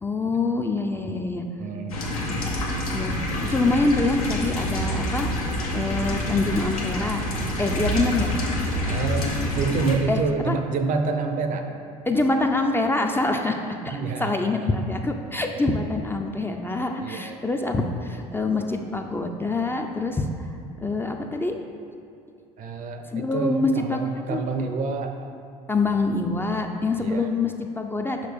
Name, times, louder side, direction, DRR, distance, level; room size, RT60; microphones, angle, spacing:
voice 1, 0.0-1.4 2.9-3.1 3.5-5.3 5.7-7.2 7.6-8.3 10.1-10.6 12.1-20.3 20.8-21.6 23.1-24.4 25.7-28.3, left 3 dB, 10° left, 3 dB, 0.4 m, -25 dB
voice 2, 1.6-2.0 7.9-8.0 8.9-11.7 13.9-14.4 17.0-17.4 21.3-21.4 22.6-25.2 27.0-27.3, right 4 dB, 45° right, 6 dB, 0.6 m, -27 dB
sound 1, 1.9-9.9, left 1 dB, 85° left, 0.8 m, -27 dB
5.8 x 4.9 x 3.5 m, 2.6 s
hypercardioid pair, 65°, 18 cm